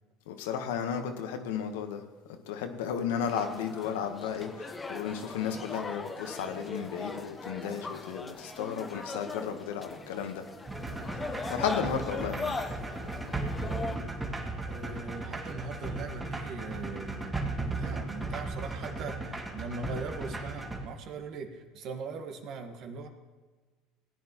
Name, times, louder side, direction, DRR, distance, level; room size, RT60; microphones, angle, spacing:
voice 1, 0.3-2.0 2.5-10.4 11.5-12.6, left 7 dB, 80° left, 6 dB, 1.1 m, -34 dB
sound 1, 3.3-14.0, left 3 dB, 20° left, 1.0 m, -40 dB
sound 2, 10.7-20.8, right 2 dB, 15° right, 1.8 m, -36 dB
voice 2, 14.6-23.1, right 4 dB, 55° right, 5 dB, 1.5 m, -40 dB
17.0 x 9.4 x 3.0 m, 1.4 s
supercardioid pair, 90°, 0 cm